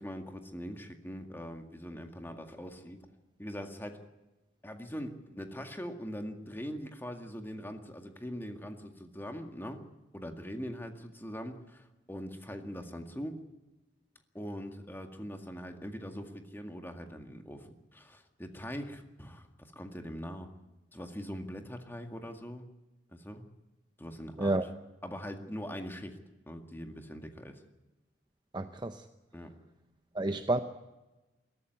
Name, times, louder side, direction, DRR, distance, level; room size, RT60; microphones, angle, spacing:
voice 1, 0.0-3.1 3.4-4.0 4.6-9.9 10.1-13.4 14.3-20.5 20.9-22.7 23.1-23.4 24.0-24.6 25.0-26.2 26.5-27.6 29.3-29.5, equal, 10° left, 5 dB, 2.0 m, -42 dB
voice 2, 28.5-29.0 30.1-30.6, right 2 dB, 25° right, 8 dB, 0.8 m, -29 dB
22.0 x 14.0 x 9.6 m, 1.1 s
head